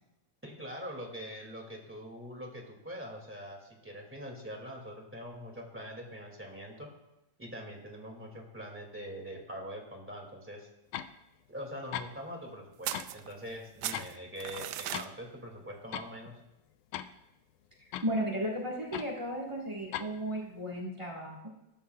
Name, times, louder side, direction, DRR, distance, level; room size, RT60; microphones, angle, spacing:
voice 1, 0.4-6.9 7.4-10.7 11.5-16.4, equal, 5° right, 0 dB, 1.7 m, -43 dB
sound 1, 10.9-11.1 11.6-11.7 11.9-12.1 12.9-13.2 13.5-14.2 14.5-15.1 15.4-15.5 15.9-16.1 16.9-17.2 17.9-18.1 18.9-19.1 19.9-20.1, left 11 dB, 85° left, 2.1 m, -38 dB
sound 2, 12.8-13.6 13.8-15.1, right 13 dB, 90° right, 1.4 m, -37 dB
voice 2, 18.0-21.4, equal, 50° right, -3 dB, 0.3 m, -34 dB
20.5 x 12.0 x 2.4 m, 0.91 s
omnidirectional pair, 3.5 m